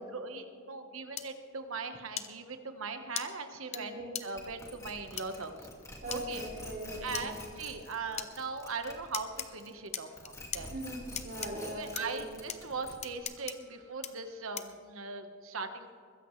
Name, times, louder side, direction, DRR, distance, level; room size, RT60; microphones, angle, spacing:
voice 1, 0.1-5.6 6.1-6.4 7.0-10.7 11.6-15.9, right 4 dB, 90° right, 7 dB, 1.3 m, -40 dB
sound 1, 1.2-1.3 2.2-2.3 3.2-3.3 3.7-3.8 4.1-4.2 5.2-5.3 6.1-6.2 7.1-7.3 8.2-8.3 9.1-9.5 9.9-10.6 11.2-11.5 12.0-12.1 12.5-12.6 13.0-13.5 14.0-14.1 14.6-14.8, left 9 dB, 35° left, 0.8 m, -37 dB
voice 2, 3.7-4.1 6.0-7.3 10.7-12.2, right 1 dB, 55° right, -6 dB, 3.3 m, -40 dB
sound 2, 4.4-9.9 10.1-13.2, left 1 dB, 15° left, 2.1 m, -47 dB
22.0 x 15.5 x 3.3 m, 2.3 s
head